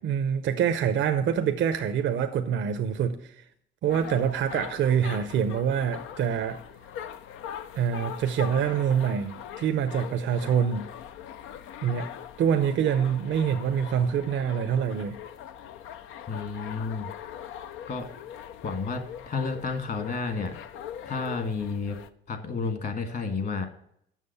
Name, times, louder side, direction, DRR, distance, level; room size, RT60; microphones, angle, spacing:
voice 1, 0.0-3.3 3.8-6.6 7.7-10.9 11.8-12.1 12.4-15.2, right 8 dB, 70° right, 7 dB, 0.7 m, -25 dB
sound 1, 3.9-22.1, left 9 dB, 85° left, 0.6 m, -41 dB
voice 2, 16.3-17.1 17.9-18.1 18.6-20.5 21.1-22.0 22.3-23.7, left 4 dB, 50° left, 6 dB, 1.8 m, -31 dB
7.4 x 6.3 x 6.9 m, 0.72 s
cardioid pair, 90°, 20 cm